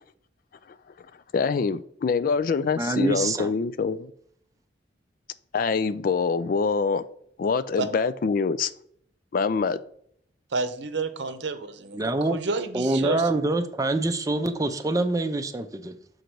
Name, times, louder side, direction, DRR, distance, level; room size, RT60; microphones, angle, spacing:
voice 1, 1.3-4.1 5.5-7.0 7.4-8.7 9.3-9.8, left 5 dB, 50° left, 0.3 m, -25 dB
voice 2, 2.8-3.5 11.9-12.4 12.7-15.9, right 2 dB, 20° right, 0.5 m, -25 dB
voice 3, 10.5-13.3, right 3 dB, 75° right, 0.7 m, -30 dB
6.4 x 3.9 x 4.6 m
head